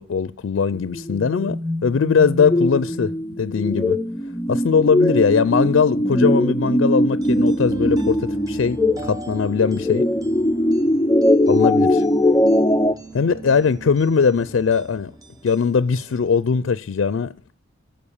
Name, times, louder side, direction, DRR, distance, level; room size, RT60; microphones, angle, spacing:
voice 1, 0.0-3.1 3.4-4.0 4.5-10.0 11.5-12.0 13.1-15.1 15.4-17.5, left 5 dB, 70° left, 0.4 m, -20 dB
sound 1, 0.7-13.0, left 1 dB, 10° left, 0.4 m, -20 dB
sound 2, 7.2-16.4, right 2 dB, 20° right, 0.8 m, -40 dB
13.5 x 5.2 x 7.1 m
head